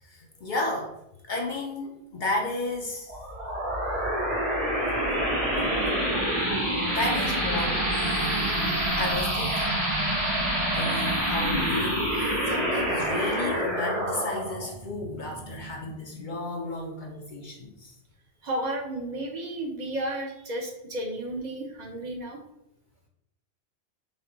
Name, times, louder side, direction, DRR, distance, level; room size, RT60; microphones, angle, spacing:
voice 1, 0.0-0.9 1.3-3.1 5.2-5.3 6.9-7.8 9.0-9.8 10.7-18.0, left 2 dB, 55° left, 1 dB, 0.7 m, -32 dB
sound 1, 3.1-16.2, right 1 dB, 75° right, 1.9 m, -27 dB
voice 2, 18.4-22.4, right 1 dB, 45° right, 2 dB, 0.8 m, -32 dB
5.2 x 2.3 x 3.8 m, 0.84 s
omnidirectional pair, 1.1 m